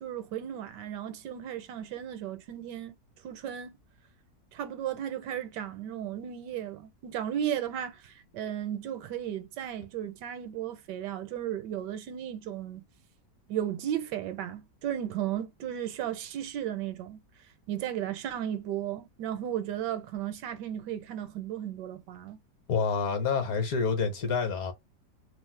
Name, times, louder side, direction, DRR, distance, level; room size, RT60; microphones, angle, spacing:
voice 1, 0.0-3.0 3.2-3.8 4.5-12.8 13.5-17.2 17.7-22.4, right 10 dB, 80° right, 1.2 m, -35 dB
voice 2, 22.7-24.7, left 5 dB, 65° left, 1.1 m, -28 dB
2.9 x 2.0 x 3.1 m
omnidirectional pair, 1.8 m